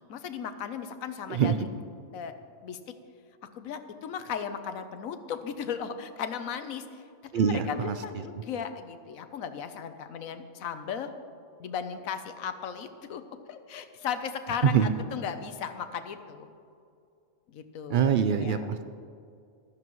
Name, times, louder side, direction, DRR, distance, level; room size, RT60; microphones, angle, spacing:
voice 1, 0.1-1.7 2.1-2.3 2.6-2.8 3.5-11.1 11.6-13.2 13.5-16.5 17.5-18.0 18.4-18.7, left 7 dB, 80° left, 9 dB, 1.2 m, -36 dB
voice 2, 7.3-8.0 14.6-14.9 17.9-18.8, right 7 dB, 80° right, 9 dB, 0.4 m, -24 dB
15.0 x 12.5 x 3.1 m, 2.4 s
omnidirectional pair, 1.4 m